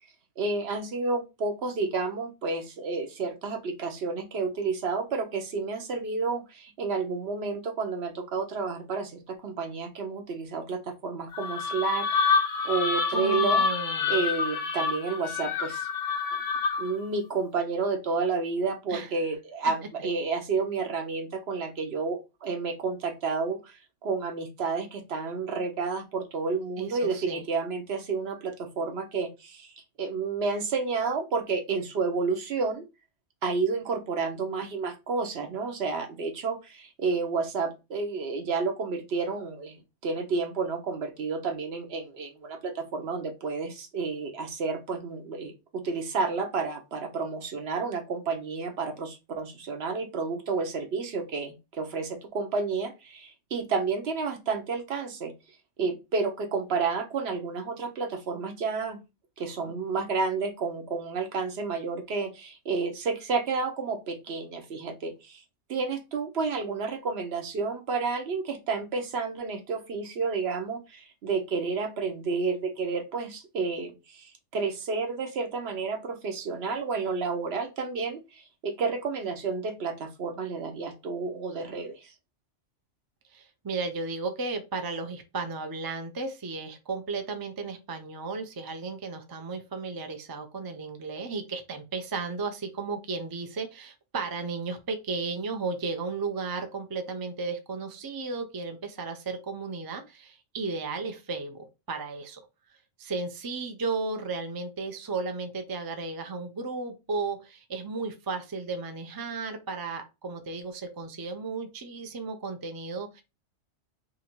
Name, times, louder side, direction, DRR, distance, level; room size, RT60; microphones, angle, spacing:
voice 1, 0.4-12.1 12.6-13.6 14.1-15.9 16.8-32.8 33.4-55.3 55.8-59.0 59.4-65.4 65.7-82.1, right 4 dB, 60° right, 4 dB, 1.0 m, -30 dB
sound 1, 11.3-17.0, left 5 dB, 55° left, 0.6 m, -27 dB
voice 2, 13.1-14.2 18.9-19.1 26.8-27.4 83.3-102.4 103.0-113.2, right 4 dB, 35° right, 6 dB, 0.3 m, -34 dB
2.8 x 2.6 x 4.3 m, 0.26 s
omnidirectional pair, 1.2 m